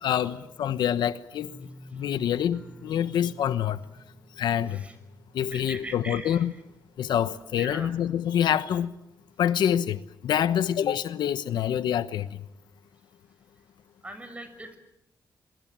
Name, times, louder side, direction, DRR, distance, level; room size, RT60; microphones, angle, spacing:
voice 1, 0.0-1.5 1.9-3.8 4.4-4.8 5.3-6.5 7.0-8.9 9.4-12.3, left 9 dB, 85° left, 1.1 m, -26 dB
sound 1, 1.4-8.3 8.6-9.1 9.5-9.6, right 1 dB, ahead, 5.5 m, -51 dB
voice 2, 5.5-6.4 7.6-7.9 14.0-14.8, right 1 dB, 15° right, 6.5 m, -40 dB
27.0 x 23.0 x 7.6 m
cardioid pair, 105°, 7 cm